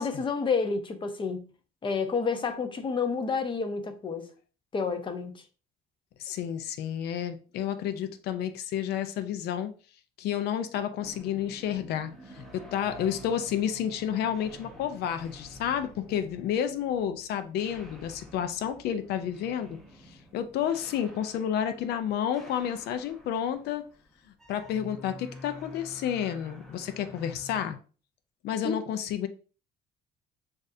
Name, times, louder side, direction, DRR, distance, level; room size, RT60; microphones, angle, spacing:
voice 1, 0.0-1.5 1.8-4.3 4.7-5.4 28.6-28.8, left 5 dB, 30° left, 0.7 m, -29 dB
voice 2, 6.2-9.7 10.2-19.8 20.3-23.8 24.5-27.8 28.4-29.3, left 9 dB, 75° left, 0.6 m, -30 dB
sound 1, 11.0-27.6, left 1 dB, ahead, 0.9 m, -49 dB
6.2 x 2.6 x 2.7 m
cardioid pair, 110°, 17 cm